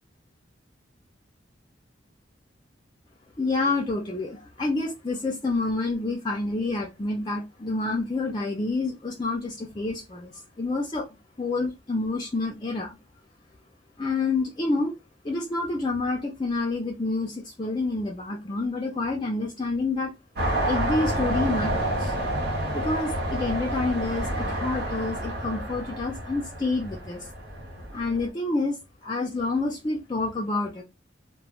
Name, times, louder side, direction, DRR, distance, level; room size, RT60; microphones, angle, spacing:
voice 1, 3.4-11.1 11.4-13.0 14.0-14.9 15.2-20.1 20.7-22.1 22.7-27.3 27.9-28.8 29.0-30.8, left 3 dB, 25° left, 0.4 m, -28 dB
sound 1, 20.3-28.3, right 1 dB, 60° right, 1.0 m, -29 dB
2.1 x 2.1 x 3.6 m
head